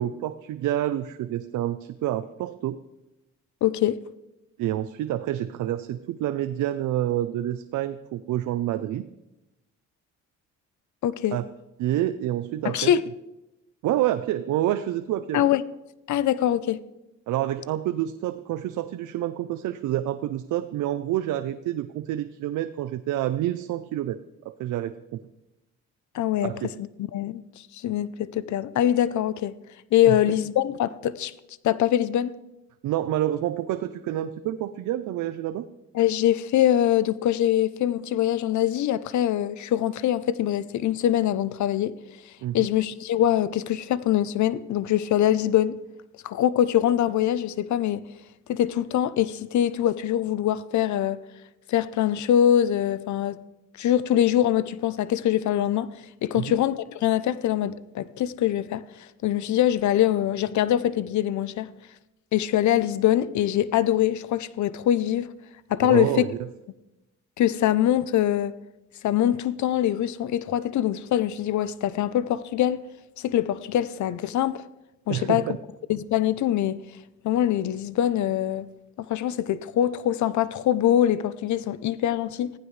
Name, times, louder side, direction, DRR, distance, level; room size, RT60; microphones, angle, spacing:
voice 1, 0.0-2.8 4.6-9.0 11.3-11.5 11.8-13.0 13.8-15.4 17.3-24.2 24.4-25.2 26.4-26.7 30.0-30.2 32.8-35.7 42.4-42.7 56.3-56.5 65.8-66.4 75.1-75.6, right 13 dB, 80° right, 0.6 m, -28 dB
voice 2, 3.6-4.0 11.0-11.4 12.6-13.0 15.3-15.6 16.1-16.8 26.1-26.5 26.8-29.5 29.9-31.3 31.6-32.3 35.9-41.9 42.5-45.8 46.2-48.0 48.5-51.2 51.7-53.4 53.8-55.9 56.2-58.8 59.2-61.7 62.3-65.3 65.7-66.3 67.4-68.5 69.0-72.8 73.2-74.6 75.1-75.4 75.9-76.8 77.2-78.7 79.0-82.5, left 11 dB, 70° left, 0.7 m, -23 dB
20.0 x 15.5 x 3.3 m
cardioid pair, 90°, 30 cm